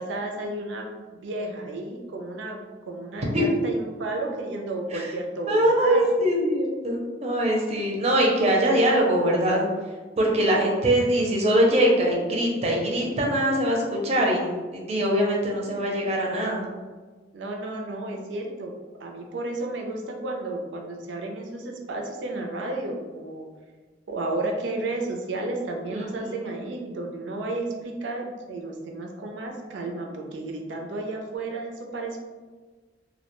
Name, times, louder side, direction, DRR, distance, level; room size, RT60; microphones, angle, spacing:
voice 1, 0.0-6.0 10.4-10.6 17.3-18.7 19.0-23.5 24.1-32.2, right 2 dB, 85° right, 1 dB, 0.4 m, -32 dB
voice 2, 5.5-9.6 10.2-16.7 25.9-26.4, right 1 dB, 35° right, -2 dB, 0.5 m, -22 dB
2.2 x 2.1 x 2.9 m, 1.4 s
head